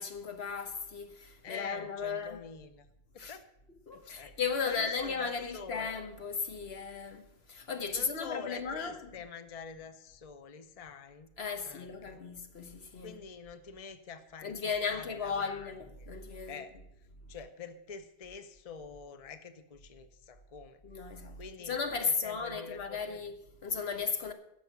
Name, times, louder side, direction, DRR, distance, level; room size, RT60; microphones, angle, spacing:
voice 1, 0.0-2.4 3.2-3.4 3.9-9.1 11.4-13.2 14.4-16.6 20.8-24.3, left 5 dB, 70° left, 1.4 m, -36 dB
voice 2, 1.4-2.9 3.1-3.4 3.9-4.4 4.7-5.9 7.9-11.3 11.6-12.2 13.0-14.6 14.9-16.1 16.5-16.7 17.0-20.8 21.4-21.7 22.0-23.2, left 6 dB, 40° left, 0.8 m, -46 dB
10.5 x 6.9 x 9.2 m
omnidirectional pair, 1.1 m